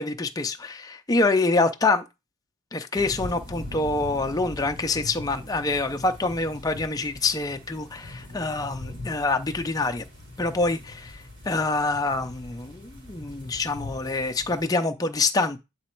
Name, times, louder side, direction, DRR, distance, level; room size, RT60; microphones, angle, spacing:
voice 1, 0.0-2.0 2.7-10.0 10.4-15.6, left 3 dB, 15° left, 0.4 m, -26 dB
sound 1, 3.0-14.7, left 2 dB, 55° right, 1.9 m, -41 dB
8.5 x 3.0 x 4.4 m
head